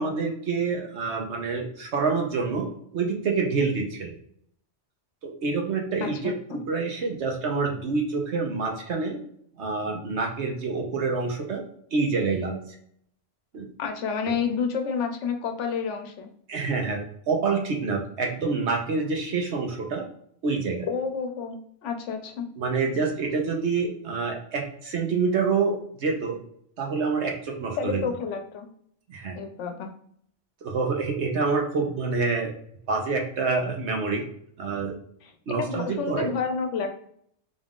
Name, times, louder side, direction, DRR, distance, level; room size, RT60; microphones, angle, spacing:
voice 1, 0.0-2.7 2.9-4.1 5.2-6.3 6.7-9.2 9.6-11.6 11.9-12.6 13.5-13.7 16.5-17.0 17.3-20.0 20.4-20.9 22.6-26.4 26.8-28.0 29.1-29.4 30.6-32.5 32.9-34.2 34.6-34.9 35.5-36.3, right 4 dB, 70° right, 1 dB, 1.1 m, -27 dB
voice 2, 6.0-6.6 13.8-16.3 20.9-22.4 27.8-28.7 29.4-29.9 35.2-36.9, left 6 dB, 90° left, 6 dB, 1.0 m, -30 dB
3.9 x 2.4 x 3.6 m, 0.67 s
omnidirectional pair, 1.2 m